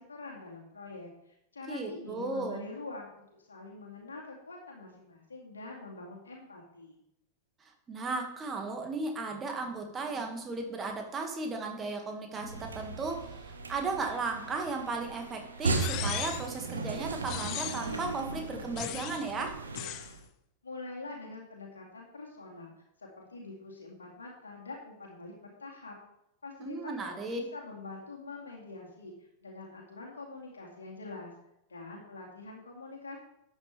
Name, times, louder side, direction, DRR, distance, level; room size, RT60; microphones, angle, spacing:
voice 1, 0.0-7.0 20.6-22.7 23.0-25.9 26.4-31.3 31.7-33.2, left 3 dB, 75° left, -1 dB, 2.2 m, -45 dB
voice 2, 1.7-2.6 7.6-19.6 26.6-27.4, right 3 dB, 20° right, 3 dB, 2.0 m, -35 dB
sound 1, 12.3-20.2, right 3 dB, 75° right, 1.3 m, -37 dB
sound 2, 15.8-16.6 17.3-18.0 18.8-19.3 19.7-20.1, left 13 dB, 40° left, 0.6 m, -38 dB
12.5 x 8.3 x 3.5 m, 0.79 s
figure-of-eight pair, 90°, 0 cm